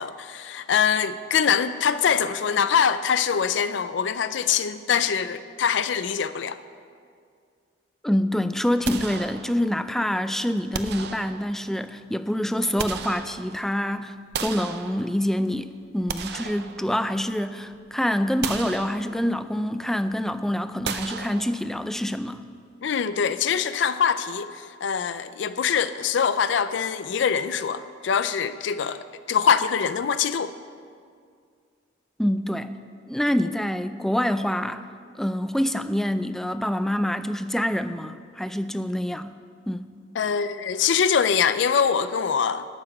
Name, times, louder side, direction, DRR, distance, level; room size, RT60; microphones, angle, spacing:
voice 1, 0.0-6.6 22.8-30.5 40.2-42.7, left 7 dB, 70° left, 0.4 m, -23 dB
voice 2, 8.0-22.4 32.2-32.8 33.1-34.9 35.1-39.3 39.7-39.9, equal, ahead, 0.3 m, -26 dB
sound 1, 8.8-9.9 10.7-11.8 12.4-13.8 14.3-15.4 15.9-17.4 17.7-17.9 18.4-19.5 20.8-22.0, right 6 dB, 60° right, 0.6 m, -35 dB
12.0 x 5.9 x 7.7 m
head